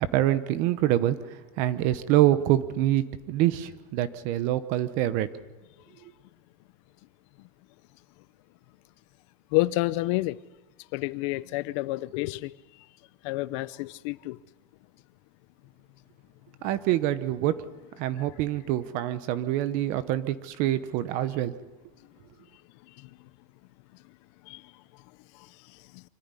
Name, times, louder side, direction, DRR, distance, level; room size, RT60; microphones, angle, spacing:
voice 1, 0.0-5.3 16.6-17.6 18.0-21.5, right 13 dB, 45° right, 0.9 m, -26 dB
voice 2, 9.5-10.4 10.9-12.5 13.2-14.4 23.0-23.1 24.5-24.6 25.9-26.0, left 19 dB, 50° left, 0.7 m, -29 dB
25.5 x 14.5 x 9.8 m
supercardioid pair, 175°, 20 cm